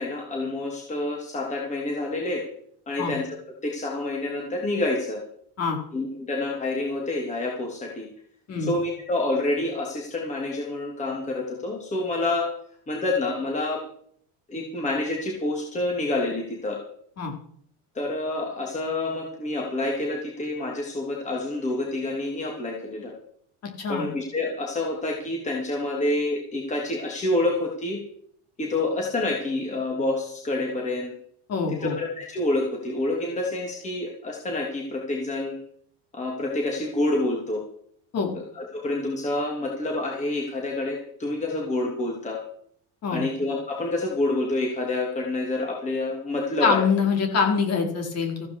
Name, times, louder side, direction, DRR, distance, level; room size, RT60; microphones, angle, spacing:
voice 1, 0.0-2.5 2.9-3.4 3.6-5.2 5.9-8.1 8.6-12.5 12.9-13.8 14.5-16.8 17.9-23.1 23.9-28.0 28.6-31.1 31.7-35.6 36.1-37.6 38.3-42.4 43.1-46.8, left 2 dB, 20° left, 0 dB, 3.1 m, -28 dB
voice 2, 31.5-32.0 38.1-38.3 43.0-43.2 46.6-48.5, left 5 dB, 40° left, 1 dB, 4.7 m, -24 dB
15.0 x 15.0 x 4.9 m, 0.62 s
cardioid pair, 160°, 38 cm